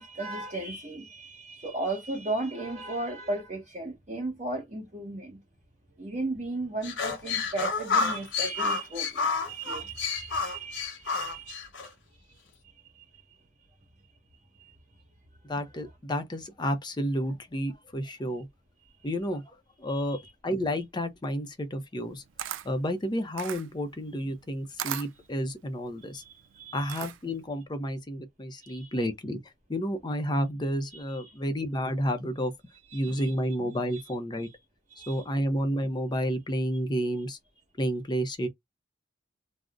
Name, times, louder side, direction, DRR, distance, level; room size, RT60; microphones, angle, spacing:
voice 1, 0.0-5.4 6.0-11.6 12.9-13.0 14.6-14.7 19.9-20.2 26.1-27.0 28.6-29.0 30.9-31.4 32.9-33.3 33.9-34.0 34.9-35.2, right 2 dB, 35° right, 1.1 m, -36 dB
sound 1, 6.8-11.9, left 5 dB, 75° left, 0.7 m, -30 dB
voice 2, 15.5-18.5 19.0-22.2 22.6-26.2 26.7-29.4 29.7-32.5 32.9-34.5 35.1-37.4 37.8-38.5, equal, 25° left, 0.5 m, -31 dB
Camera, 22.0-27.5, right 11 dB, 80° right, 0.4 m, -39 dB
2.5 x 2.0 x 3.4 m
head